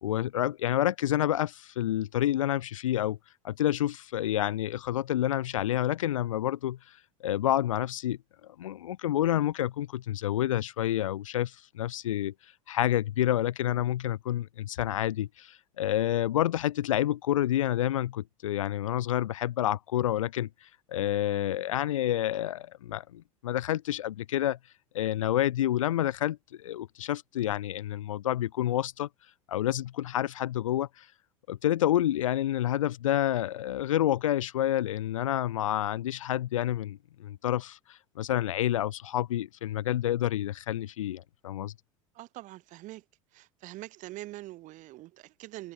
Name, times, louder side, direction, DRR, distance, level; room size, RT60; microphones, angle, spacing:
voice 1, 0.0-3.2 3.4-6.8 7.2-12.3 12.7-24.6 24.9-29.1 29.5-31.1 31.5-41.7, left 12 dB, 70° left, 0.8 m, -29 dB
voice 2, 42.1-43.0 43.3-45.7, right 17 dB, 50° right, 3.6 m, -44 dB
figure-of-eight pair, 75°, 17 cm